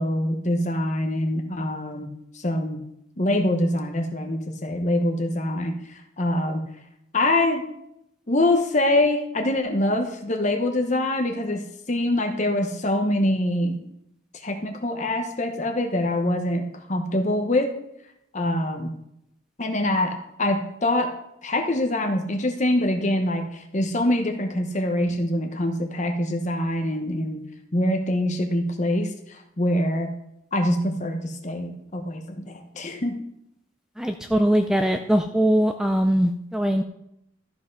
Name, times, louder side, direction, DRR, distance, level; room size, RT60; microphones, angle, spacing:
voice 1, 0.0-2.1 2.3-2.8 3.2-6.6 7.1-7.6 8.3-13.8 14.3-17.7 18.3-18.9 19.6-21.1 21.4-30.2 30.5-33.2, left 1 dB, 35° left, 4 dB, 0.9 m, -24 dB
voice 2, 34.0-36.8, equal, 5° right, 6 dB, 0.3 m, -21 dB
13.0 x 5.5 x 5.3 m, 0.80 s
head